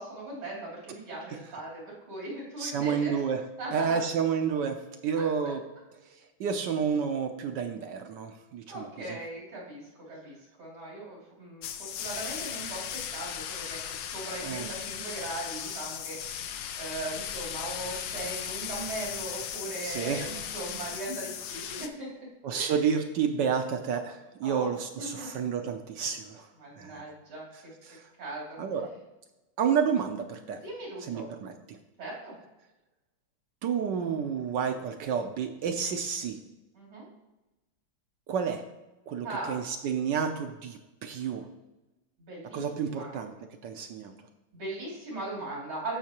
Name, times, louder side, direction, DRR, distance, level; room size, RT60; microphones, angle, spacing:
voice 1, 0.0-3.2 3.6-4.0 5.2-5.3 8.7-9.8 10.1-16.2 16.8-22.3 22.5-22.8 24.4-24.7 25.0-25.3 26.6-27.4 28.2-28.6 30.5-31.3 32.0-32.4 36.7-37.1 39.2-39.6 42.2-42.6 42.9-43.3 44.5-46.0, right 2 dB, 90° right, -4 dB, 3.7 m, -39 dB
voice 2, 2.6-3.4 3.7-5.6 6.4-9.2 14.4-14.7 19.8-20.3 22.4-26.5 26.7-27.0 27.9-28.0 28.6-28.9 29.6-30.6 31.0-31.8 33.6-36.4 38.3-38.6 39.1-41.5 42.5-43.3 43.6-44.1, right 7 dB, 70° right, 6 dB, 1.2 m, -30 dB
sound 1, 11.6-21.9, left 9 dB, 75° left, 1.3 m, -37 dB
14.5 x 5.6 x 2.9 m, 1.0 s
omnidirectional pair, 2.2 m